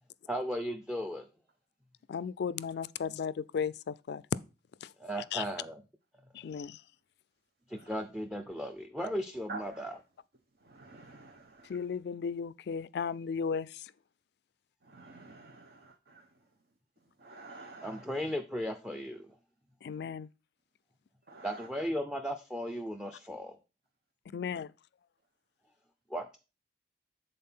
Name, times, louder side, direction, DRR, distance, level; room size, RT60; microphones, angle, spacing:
voice 1, 0.3-1.3 5.0-5.8 7.7-9.9 17.8-19.3 21.4-23.5 26.1-26.4, equal, 5° right, 0.5 m, -36 dB
voice 2, 2.1-4.2 4.8-5.5 6.3-6.8 11.6-13.9 19.8-20.3 24.3-24.7, left 6 dB, 65° left, 0.3 m, -36 dB
voice 3, 9.5-9.9 10.6-11.8 14.8-16.3 17.2-18.0 21.3-21.7, right 3 dB, 60° right, 0.8 m, -49 dB
7.6 x 4.0 x 5.5 m
head